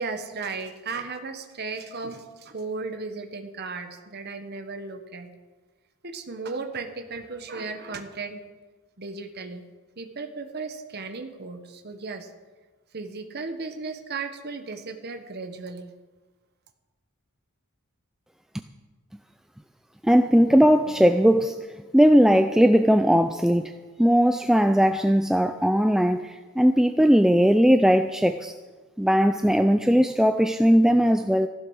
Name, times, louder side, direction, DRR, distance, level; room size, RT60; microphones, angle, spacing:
voice 1, 0.0-5.3 6.0-8.4 9.0-9.7 10.0-12.3 12.9-15.9, right 4 dB, 45° right, 6 dB, 1.1 m, -35 dB
voice 2, 20.0-21.6 21.9-23.7 24.0-28.5 29.0-31.5, equal, ahead, 7 dB, 0.3 m, -19 dB
14.5 x 11.5 x 6.3 m, 1.3 s
head